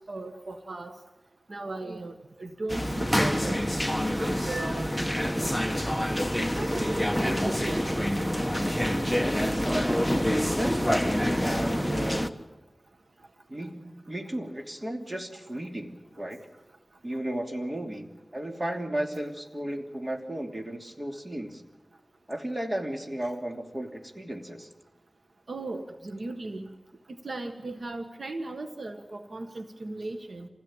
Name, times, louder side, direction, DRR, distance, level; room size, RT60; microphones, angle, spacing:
voice 1, 0.1-0.9 1.5-2.1 2.4-3.6 3.9-5.2 6.4-7.9 25.5-26.7 27.2-30.5, right 2 dB, 75° right, 5 dB, 1.6 m, -37 dB
sound 1, 2.7-12.3, equal, ahead, 1.3 m, -27 dB
voice 2, 10.4-11.0 11.4-12.4 13.5-16.4 17.0-21.6 22.3-24.7, right 1 dB, 30° right, 2 dB, 3.0 m, -34 dB
26.5 x 16.5 x 9.0 m, 1.1 s
wide cardioid pair, 75°, 0 cm